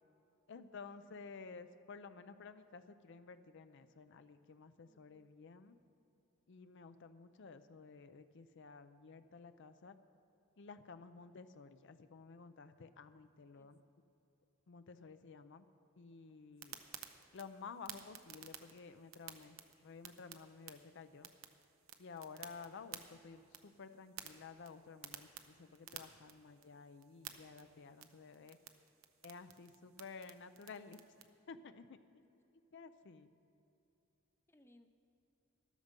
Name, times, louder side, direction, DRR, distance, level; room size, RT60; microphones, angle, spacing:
voice 1, 0.5-5.8 6.5-10.0 10.6-13.8 14.7-15.6 16.0-16.8 17.3-19.6 19.8-21.3 22.0-28.6 29.2-32.0 32.7-33.3, left 5 dB, 60° left, 11 dB, 0.5 m, -53 dB
voice 2, 4.9-5.3 13.5-13.7 15.8-16.4 16.7-16.9 34.5-34.9, left 1 dB, 10° left, 7 dB, 0.5 m, -69 dB
sound 1, 16.6-31.2, right 10 dB, 85° right, 0.8 m, -55 dB
13.5 x 12.5 x 5.3 m, 2.9 s
head